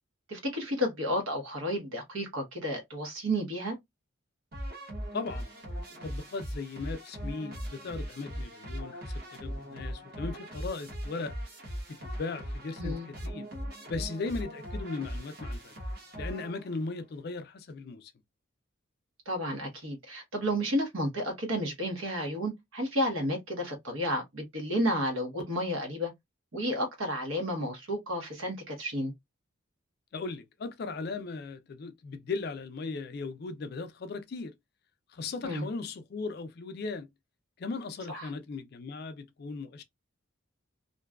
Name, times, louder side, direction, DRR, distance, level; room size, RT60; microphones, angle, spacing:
voice 1, 0.3-3.8 12.8-13.1 19.3-26.1 26.5-29.1 35.4-35.7 38.1-38.3, equal, 75° right, 0.9 m, -32 dB
sound 1, 4.5-16.9, equal, 45° right, 0.9 m, -39 dB
voice 2, 5.1-5.5 6.0-11.3 12.0-13.5 13.9-15.7 16.2-18.1 30.1-34.5 35.1-37.1 37.6-39.8, left 4 dB, 50° left, 0.3 m, -37 dB
2.5 x 2.2 x 2.2 m
head